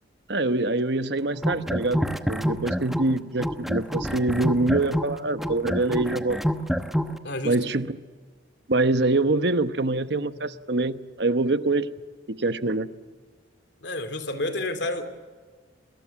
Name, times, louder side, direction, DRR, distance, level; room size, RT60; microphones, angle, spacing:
voice 1, 0.3-6.4 7.4-7.9 8.7-11.9 12.3-12.9, right 2 dB, 60° right, 11 dB, 1.1 m, -25 dB
sound 1, 1.3-3.1 3.4-7.2, equal, ahead, 0.9 m, -27 dB
voice 2, 7.2-7.6 13.8-15.2, left 2 dB, 65° left, 8 dB, 3.0 m, -30 dB
29.0 x 22.0 x 7.3 m, 1.5 s
head